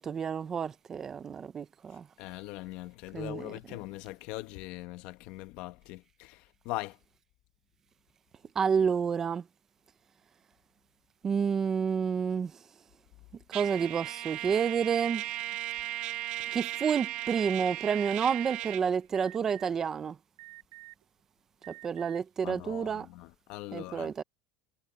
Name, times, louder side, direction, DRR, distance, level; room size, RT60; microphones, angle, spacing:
voice 1, 0.0-2.0 3.1-3.8 8.6-9.4 11.2-12.5 13.5-15.2 16.5-20.1 21.8-23.1 23.7-24.2, right 6 dB, 15° right, 0.5 m, -29 dB
voice 2, 2.2-7.0 22.4-24.1, left 18 dB, 45° left, 1.0 m, -41 dB
Trumpet, 13.5-18.9, right 16 dB, 40° right, 1.0 m, -36 dB
Alarm, 17.9-18.4 19.1-19.7 20.4-21.0 21.6-22.2, right 30 dB, 55° right, 6.8 m, -49 dB
supercardioid pair, 175°, 3 cm